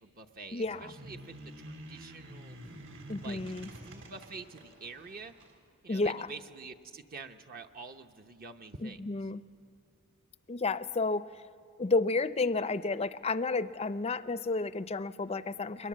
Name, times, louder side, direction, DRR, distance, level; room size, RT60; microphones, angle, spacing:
voice 1, 0.0-1.3 1.7-2.6 3.2-3.4 3.8-5.3 5.8-9.0, right 4 dB, 45° right, 5 dB, 0.9 m, -47 dB
voice 2, 0.5-0.9 3.1-3.7 5.9-6.3 8.8-9.4 10.5-11.3 11.8-15.9, left 3 dB, 30° left, 14 dB, 0.5 m, -31 dB
sound 1, 0.6-5.6, right 1 dB, 60° right, 3.9 m, -48 dB
29.5 x 22.0 x 7.6 m, 2.3 s
head